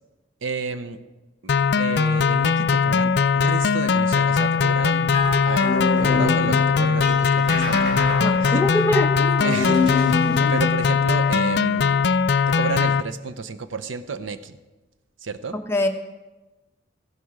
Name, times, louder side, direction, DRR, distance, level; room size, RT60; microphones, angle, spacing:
voice 1, 0.4-1.0 1.4-5.2 5.4-5.7 6.0-7.9 8.4-8.6 9.4-10.2 10.5-12.1 12.5-14.6 15.2-15.6, right 4 dB, 85° right, 10 dB, 0.7 m, -31 dB
sound 1, 1.5-13.0, left 6 dB, 60° left, 0.4 m, -20 dB
sound 2, 4.9-10.7, left 3 dB, 70° right, 3.9 m, -27 dB
voice 2, 8.2-9.4 10.2-10.6 15.5-15.9, left 1 dB, 15° left, 4 dB, 0.8 m, -24 dB
15.0 x 12.0 x 4.8 m, 1.1 s
head